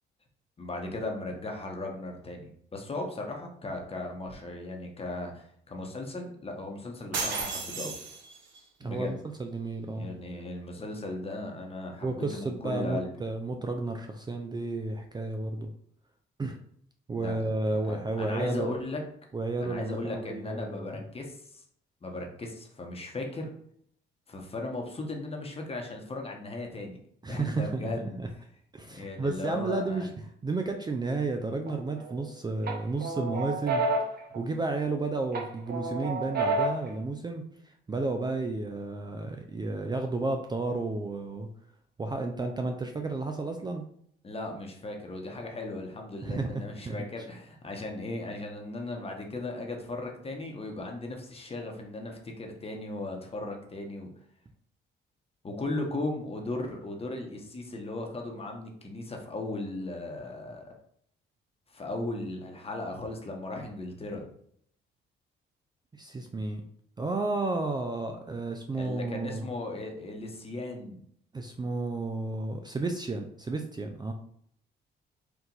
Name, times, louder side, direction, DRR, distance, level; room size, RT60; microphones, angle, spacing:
voice 1, 0.6-7.9 8.8-9.2 9.8-13.1 17.1-19.0 19.6-21.6 22.0-23.5 24.3-27.0 27.3-28.2 28.9-30.1 44.2-54.1 55.4-60.7 61.7-64.2 68.7-71.0, left 2 dB, 30° left, 2 dB, 1.1 m, -37 dB
sound 1, 7.1-8.6, right 4 dB, 70° right, 1.0 m, -33 dB
voice 2, 8.8-10.1 12.0-15.7 16.4-16.6 17.1-18.7 19.3-20.9 27.2-27.9 28.2-28.3 28.7-33.9 34.3-41.5 42.0-43.8 46.2-46.5 46.8-47.0 65.9-66.6 67.0-69.5 71.3-74.1, right 3 dB, 20° right, 4 dB, 0.4 m, -32 dB
sound 2, 31.7-32.2 32.7-34.9 35.3-36.9, right 2 dB, 50° right, 1.0 m, -30 dB
4.5 x 2.5 x 4.0 m, 0.66 s
cardioid pair, 90°, 20 cm